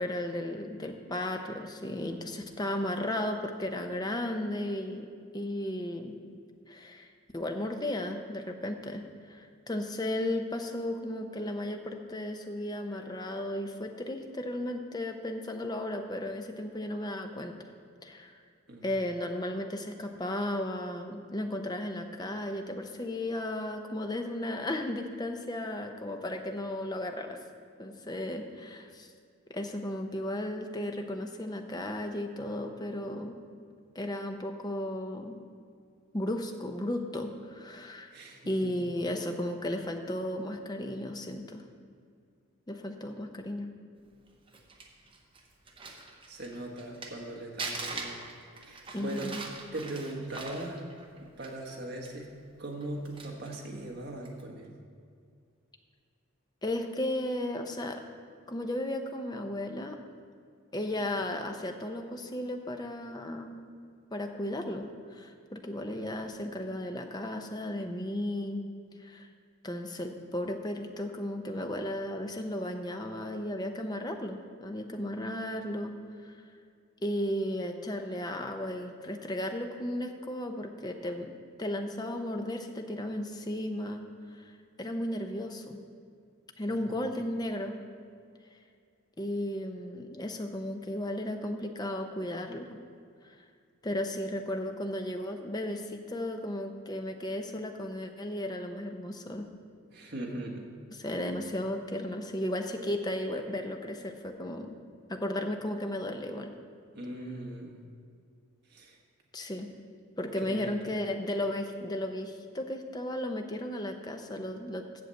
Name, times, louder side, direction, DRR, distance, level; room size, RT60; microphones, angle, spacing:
voice 1, 0.0-5.1 5.3-6.2 6.7-7.1 7.3-9.0 9.3-17.5 18.0-18.4 18.8-27.4 27.8-29.1 29.5-33.4 33.9-35.4 36.1-38.1 38.4-41.6 42.7-43.7 48.9-49.4 56.6-58.0 58.5-60.0 60.7-63.6 64.1-68.6 69.0-69.3 69.6-76.0 76.2-76.3 77.0-84.0 84.3-84.5 84.8-85.8 86.6-87.8 89.2-92.8 93.2-93.4 93.8-99.5 100.9-104.8 105.1-106.5 109.3-109.7 110.2-115.0, left 1 dB, 20° left, 5 dB, 0.6 m, -35 dB
voice 2, 38.1-38.7 46.3-48.2 48.6-49.3 49.6-50.8 51.2-52.3 52.6-54.7 86.7-87.0 99.9-100.7 106.9-107.8 108.7-109.0 110.4-110.7, right 1 dB, 50° right, -1 dB, 1.6 m, -40 dB
Crumpling crinkling, 44.3-47.2 47.6-51.7 52.1-52.2 52.7-53.6 54.2-54.4, right 3 dB, 25° right, 0.9 m, -41 dB
7.8 x 6.8 x 7.7 m, 2.3 s
head